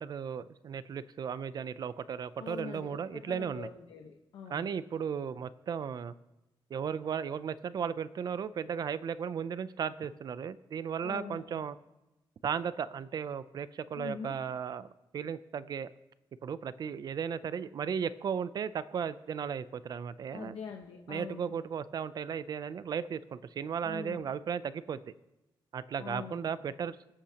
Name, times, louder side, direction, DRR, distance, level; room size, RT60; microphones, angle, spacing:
voice 1, 0.0-3.7 4.5-6.1 6.7-11.8 12.4-15.9 16.4-20.6 21.1-25.0 25.7-27.0, right 7 dB, 50° right, 15 dB, 0.4 m, -35 dB
voice 2, 2.4-4.7 11.0-11.6 13.9-14.3 20.3-21.5 23.8-24.3 26.0-26.5, left 6 dB, 90° left, 1 dB, 1.1 m, -44 dB
24.5 x 8.7 x 2.9 m, 1.0 s
wide cardioid pair, 160°, 9 cm